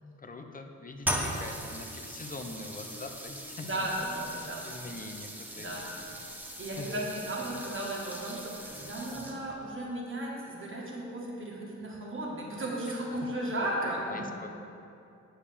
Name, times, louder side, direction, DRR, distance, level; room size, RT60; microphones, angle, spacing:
voice 1, 0.2-3.9 4.4-5.7 6.0-6.1 6.8-7.0 13.8-14.5, left 2 dB, 30° left, 5 dB, 0.6 m, -43 dB
sound 1, 1.0-9.6, right 1 dB, 5° right, 0.8 m, -39 dB
voice 2, 3.6-4.7 5.5-5.9 6.6-14.3, right 1 dB, 40° right, -4 dB, 1.6 m, -35 dB
8.7 x 6.8 x 3.5 m, 2.6 s
wide cardioid pair, 110°, 30 cm